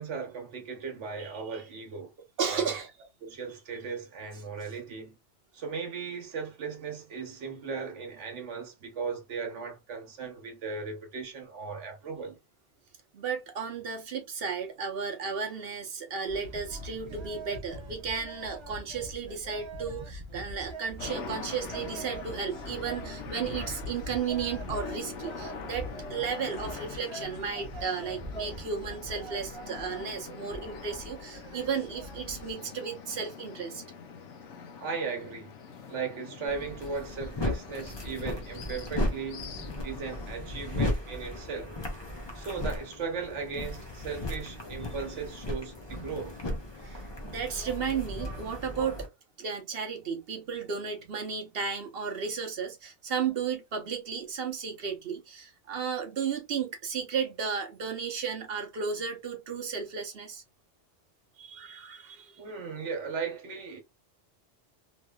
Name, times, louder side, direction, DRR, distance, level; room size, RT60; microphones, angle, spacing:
voice 1, 0.0-2.1 2.5-2.7 3.2-5.1 5.5-12.4 34.8-35.5 35.9-39.5 39.8-41.7 42.3-46.4 62.4-63.8, right 5 dB, 80° right, 1.1 m, -37 dB
voice 2, 1.2-1.6 2.4-2.9 13.1-33.8 46.8-49.1 49.4-60.4 61.4-62.4, right 6 dB, 60° right, 0.9 m, -34 dB
sound 1, 16.3-32.5, right 1 dB, 30° right, 0.6 m, -43 dB
sound 2, 21.0-40.4, left 5 dB, 85° left, 1.0 m, -44 dB
sound 3, 36.5-49.1, left 1 dB, 25° left, 0.7 m, -36 dB
3.1 x 2.7 x 2.3 m
omnidirectional pair, 1.2 m